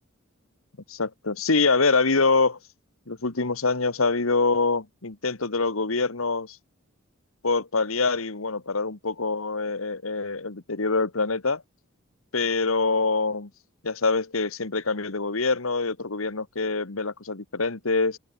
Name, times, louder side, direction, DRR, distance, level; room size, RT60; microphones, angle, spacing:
voice 1, 0.9-2.6 3.1-6.6 7.4-11.6 12.3-13.5 13.8-18.2, left 3 dB, 80° left, 1.6 m, -25 dB
open air
head